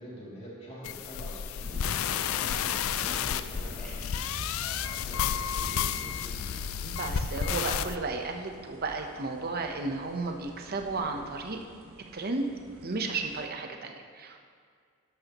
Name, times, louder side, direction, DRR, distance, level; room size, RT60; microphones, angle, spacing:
voice 1, 0.0-4.0 4.6-6.8 12.5-12.8, equal, 30° left, -7 dB, 2.8 m, -45 dB
sound 1, 0.8-8.0, left 8 dB, 70° left, 0.4 m, -31 dB
sound 2, 1.6-13.5, right 1 dB, 75° right, 1.0 m, -51 dB
sound 3, 2.8-11.4, equal, 5° left, 2.4 m, -48 dB
voice 2, 6.8-11.6 12.1-12.5 12.8-14.4, right 3 dB, 45° right, 4 dB, 0.9 m, -33 dB
12.0 x 12.0 x 3.0 m, 2.1 s
head